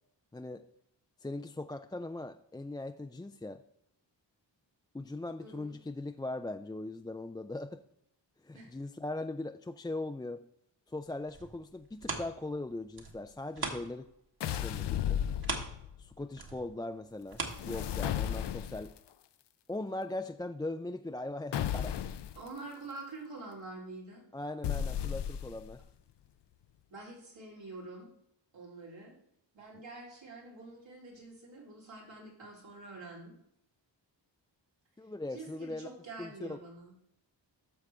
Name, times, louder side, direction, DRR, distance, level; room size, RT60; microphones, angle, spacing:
voice 1, 0.3-0.6 1.2-3.6 4.9-7.8 8.4-10.4 10.9-14.1 14.5-15.2 16.0-18.9 19.7-22.1 24.3-25.8 35.0-35.9 36.2-36.6, left 2 dB, 10° left, 6 dB, 0.3 m, -40 dB
voice 2, 5.4-5.7 8.5-8.7 22.4-24.2 26.9-28.1 28.5-29.2 29.5-33.3 35.3-36.9, right 3 dB, 85° right, -5 dB, 3.8 m, -46 dB
sound 1, 11.0-14.2 14.5-18.3 18.8-18.9, right 3 dB, 55° right, 1.8 m, -41 dB
sound 2, 14.4-16.0 17.4-19.0 21.5-22.4 24.6-25.7, left 10 dB, 65° left, 0.6 m, -34 dB
11.5 x 6.4 x 3.5 m, 0.75 s
cardioid pair, 70°, 44 cm